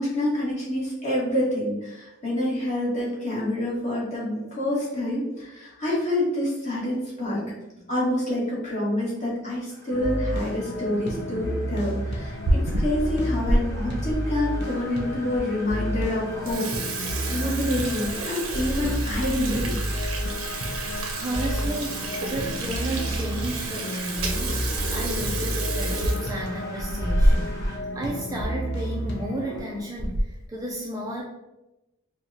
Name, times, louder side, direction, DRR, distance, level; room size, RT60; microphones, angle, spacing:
voice 1, 0.0-7.4 7.9-12.4 12.8-19.8, left 1 dB, 35° left, -7 dB, 1.2 m, -27 dB
sound 1, 9.7-27.8, right 1 dB, 15° left, 1.0 m, -45 dB
sound 2, 9.9-29.8, equal, 55° left, 0.6 m, -31 dB
Water tap faucet / Sink (filling or washing), 12.1-13.6 14.1-14.2 14.9-15.0 15.3-15.4 15.8-16.0 16.3-27.7 28.0-28.1 28.4-28.5 29.3-29.6 30.0-30.4, right 1 dB, 90° right, 0.5 m, -28 dB
voice 2, 21.1-31.2, right 1 dB, 15° right, -2 dB, 0.3 m, -33 dB
4.6 x 2.1 x 2.6 m, 1.0 s
head